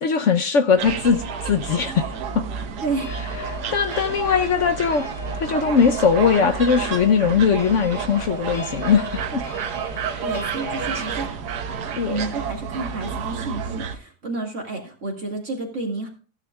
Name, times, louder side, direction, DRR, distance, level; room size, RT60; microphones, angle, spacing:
voice 1, 0.0-2.0 3.5-5.1 5.4-9.4 11.0-11.1 12.0-12.2, left 6 dB, 60° left, 7 dB, 1.0 m, -20 dB
sound 1, 0.8-14.0, right 6 dB, 85° right, 1.5 m, -30 dB
voice 2, 2.8-3.1 10.2-11.3 11.8-16.1, right 3 dB, 50° right, 0 dB, 2.2 m, -30 dB
sound 2, 2.9-11.2, left 4 dB, 20° left, 1.3 m, -39 dB
15.5 x 9.6 x 2.3 m, 0.39 s
omnidirectional pair, 1.7 m